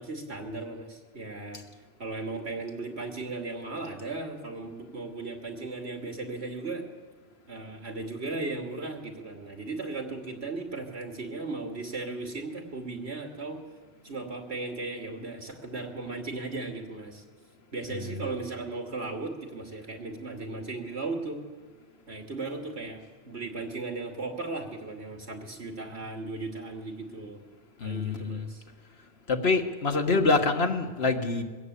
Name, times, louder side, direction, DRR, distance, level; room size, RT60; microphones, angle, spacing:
voice 1, 0.0-1.6 2.0-6.8 7.5-13.6 14.0-17.2 17.7-21.4 22.1-23.0 23.3-27.4 27.8-28.6, right 3 dB, 80° right, 3 dB, 2.9 m, -36 dB
voice 2, 27.8-28.5 29.3-31.4, left 3 dB, 75° left, 5 dB, 1.9 m, -26 dB
22.0 x 16.0 x 8.5 m, 1.4 s
omnidirectional pair, 1.1 m